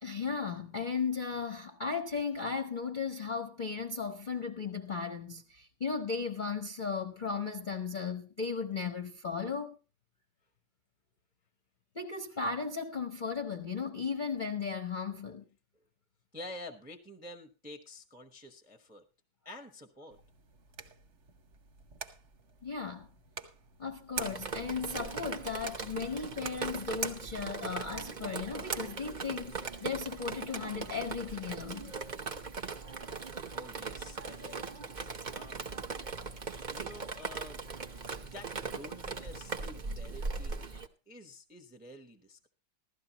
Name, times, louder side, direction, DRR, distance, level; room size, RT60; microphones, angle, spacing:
voice 1, 0.0-9.8 11.9-15.4 22.6-23.1 23.8-31.9, left 5 dB, 45° left, 0.6 m, -36 dB
voice 2, 16.3-19.1 19.4-20.2 33.5-34.9 35.3-35.7 36.7-37.7 38.2-40.8 41.1-42.5, left 1 dB, 10° right, 0.5 m, -49 dB
sound 1, 20.1-30.8, right 5 dB, 45° right, 1.0 m, -45 dB
Drip, 24.2-40.9, right 4 dB, 70° right, 0.4 m, -40 dB
16.0 x 13.0 x 2.9 m
omnidirectional pair, 2.2 m